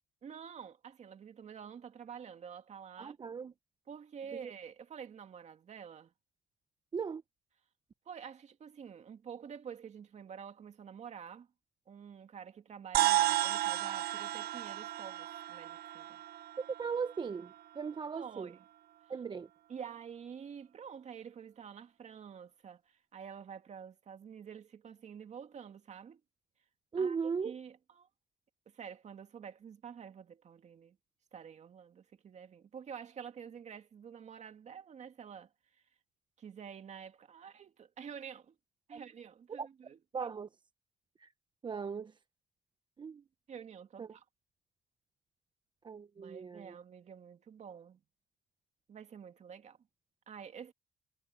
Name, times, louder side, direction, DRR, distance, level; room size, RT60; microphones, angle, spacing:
voice 1, 0.2-3.1 3.9-6.1 8.1-11.5 11.9-16.2 18.1-18.6 19.7-26.2 27.0-28.1 28.7-31.0 31.3-35.5 36.4-38.6 38.9-40.0 43.5-44.2 46.2-48.0 48.9-49.8 50.3-50.7, right 7 dB, 45° right, 2.3 m, -48 dB
voice 2, 3.0-3.5 4.4-4.5 6.9-7.2 16.6-18.5 19.1-19.5 26.9-27.6 38.9-39.0 39.6-39.7 40.1-40.5 41.2-41.3 41.6-42.2 43.0-43.2 44.0-44.2 45.8-46.7, right 5 dB, 25° right, 0.7 m, -38 dB
sound 1, 12.9-17.5, right 14 dB, 65° right, 0.6 m, -33 dB
cardioid pair, 110°, 17 cm